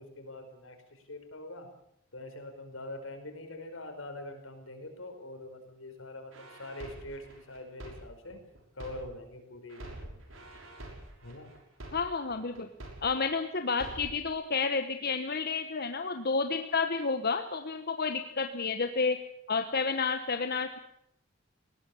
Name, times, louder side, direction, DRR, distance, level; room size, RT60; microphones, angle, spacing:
voice 1, 0.0-1.7 2.1-8.4 8.7-10.2 11.2-11.5, left 1 dB, 80° left, 6 dB, 5.1 m, -44 dB
sound 1, 6.3-9.3 9.7-13.3 13.7-14.3, right 1 dB, 85° right, 6.2 m, -46 dB
voice 2, 11.9-12.7 13.0-19.2 19.5-20.8, left 4 dB, 55° left, 7 dB, 1.3 m, -30 dB
20.5 x 17.5 x 8.5 m, 0.72 s
head